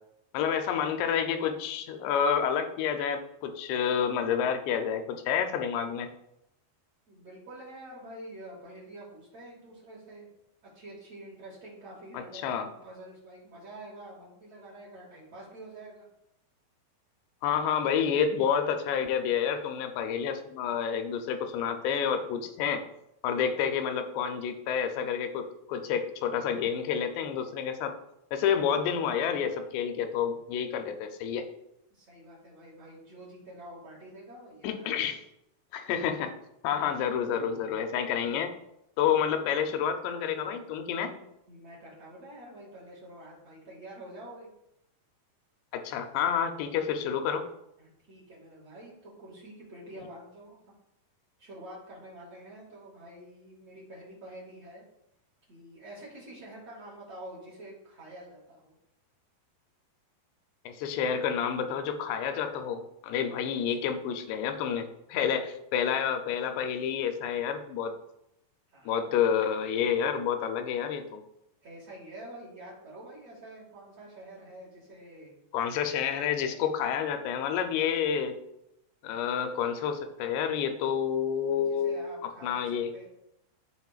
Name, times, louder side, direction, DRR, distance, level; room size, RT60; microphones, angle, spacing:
voice 1, 0.3-6.1 12.3-12.7 17.4-22.8 23.2-27.9 28.3-31.5 34.6-35.2 35.7-36.3 36.6-38.5 39.0-41.1 45.7-47.5 60.7-67.9 68.9-71.2 75.5-78.4 79.0-82.0 82.4-82.9, left 8 dB, 90° left, 7 dB, 2.8 m, -29 dB
voice 2, 7.1-10.3 10.6-16.1 31.9-35.1 41.0-44.5 47.8-50.6 51.4-54.8 55.5-58.7 63.2-63.9 65.3-65.5 68.7-69.0 71.6-75.3 81.5-83.1, right 1 dB, 45° right, -6 dB, 2.4 m, -47 dB
13.0 x 4.4 x 2.4 m, 0.82 s
omnidirectional pair, 4.7 m